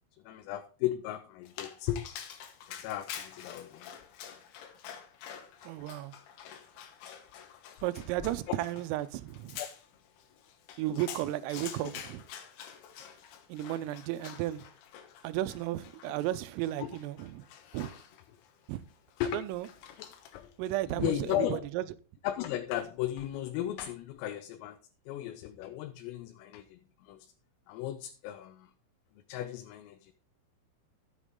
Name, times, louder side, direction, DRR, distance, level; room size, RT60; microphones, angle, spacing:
voice 1, 0.3-2.0 2.8-3.9 8.2-8.6 9.6-9.7 16.1-16.2 16.8-16.9 19.2-19.4 20.3-20.5 20.9-21.6 22.2-24.8 25.1-27.3 27.7-28.7 29.3-30.1, left 12 dB, 90° left, 3.5 m, -35 dB
Dog, 1.5-20.5, left 9 dB, 70° left, 2.7 m, -48 dB
voice 2, 5.7-6.1 7.8-9.6 10.8-12.2 13.5-14.6 15.2-17.4 17.7-17.9 18.7-18.8 19.3-19.7 20.6-21.8, right 14 dB, 90° right, 3.3 m, -34 dB
13.5 x 8.1 x 3.7 m
omnidirectional pair, 5.8 m